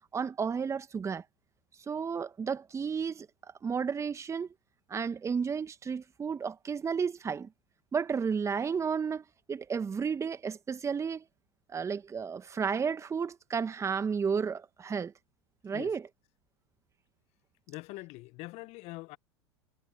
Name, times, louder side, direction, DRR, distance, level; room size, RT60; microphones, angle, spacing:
voice 1, 0.1-1.2 1.9-3.3 3.6-4.5 4.9-7.5 7.9-11.2 11.7-15.1 15.6-16.0, right 6 dB, 20° right, 1.7 m, -32 dB
voice 2, 17.7-19.2, left 22 dB, 50° left, 1.4 m, -43 dB
hypercardioid pair, 85°, 14 cm